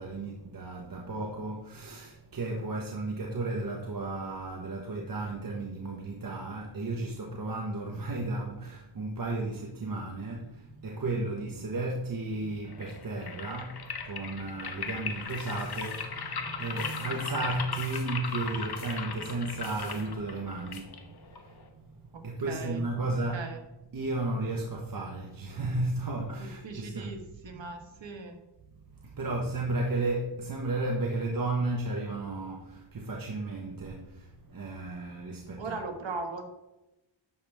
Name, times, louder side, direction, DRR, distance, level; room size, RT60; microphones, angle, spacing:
voice 1, 0.0-23.5 23.8-27.2 27.4-27.7 27.9-28.1 29.0-35.8, right 2 dB, 45° right, 1.2 m, -34 dB
sound 1, 12.7-21.7, left 5 dB, 55° left, 1.2 m, -38 dB
sound 2, 15.3-16.0 16.8-17.1 17.8-18.1 18.7-19.0 19.6-20.0 20.7-20.8, left 5 dB, 75° left, 2.4 m, -50 dB
voice 2, 22.1-22.8 23.3-23.6 26.4-28.4 35.6-36.4, right 3 dB, 70° right, 1.6 m, -39 dB
11.5 x 7.1 x 3.5 m
wide cardioid pair, 95°, 46 cm